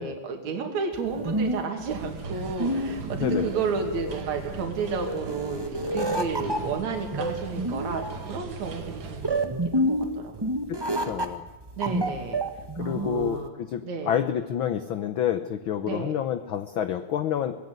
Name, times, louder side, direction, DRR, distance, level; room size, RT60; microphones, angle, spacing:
voice 1, 0.0-10.0 10.2-10.4 11.1-11.3 11.8-12.4 12.8-13.5 13.8-14.2 15.8-16.2, right 5 dB, 70° right, 4 dB, 3.7 m, -32 dB
sound 1, 0.9-13.5, right 1 dB, 30° right, 0.4 m, -29 dB
sound 2, 1.9-9.5, right 4 dB, 45° right, 2.4 m, -39 dB
voice 2, 10.7-11.4 12.8-17.6, left 10 dB, 65° left, 10 dB, 1.3 m, -29 dB
24.5 x 18.5 x 9.4 m, 1.1 s
omnidirectional pair, 3.3 m